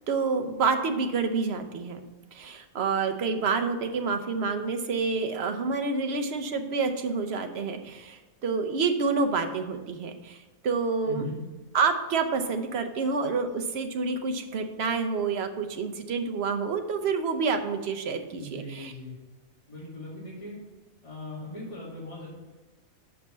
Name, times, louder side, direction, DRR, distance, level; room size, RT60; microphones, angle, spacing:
voice 1, 0.1-2.0 2.3-11.3 11.7-18.9, right 4 dB, 55° right, 6 dB, 1.0 m, -28 dB
voice 2, 11.0-11.4 18.3-19.2 19.7-20.6 21.0-22.3, left 1 dB, 25° left, -8 dB, 2.1 m, -39 dB
6.0 x 5.3 x 6.6 m, 1.2 s
omnidirectional pair, 1.4 m